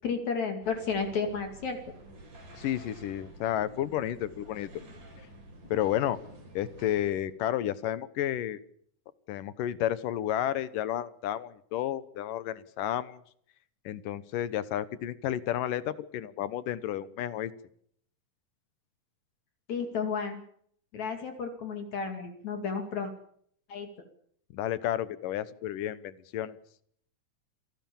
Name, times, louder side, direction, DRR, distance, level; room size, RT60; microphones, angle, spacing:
voice 1, 0.0-1.8 19.7-20.4 20.9-23.1 23.7-23.9, left 5 dB, 60° left, 5 dB, 3.7 m, -32 dB
sound 1, 0.6-7.2, right 1 dB, 70° right, 7.7 m, -50 dB
voice 2, 2.5-4.7 5.7-6.2 6.5-8.6 9.3-13.2 13.9-17.5 24.5-26.6, left 12 dB, 80° left, 16 dB, 2.7 m, -31 dB
27.0 x 18.0 x 7.2 m, 0.65 s
omnidirectional pair, 3.8 m